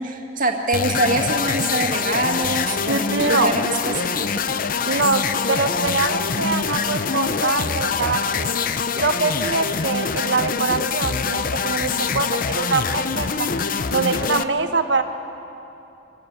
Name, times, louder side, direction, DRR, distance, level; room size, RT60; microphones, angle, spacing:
voice 1, 0.0-4.4, right 2 dB, 50° right, 2 dB, 2.1 m, -24 dB
sound 1, 0.7-14.4, left 5 dB, 50° left, 0.7 m, -24 dB
voice 2, 2.9-3.5 4.8-8.5 8.9-13.5 13.9-15.0, right 4 dB, 85° right, 7 dB, 1.3 m, -23 dB
24.5 x 15.0 x 8.8 m, 2.9 s
head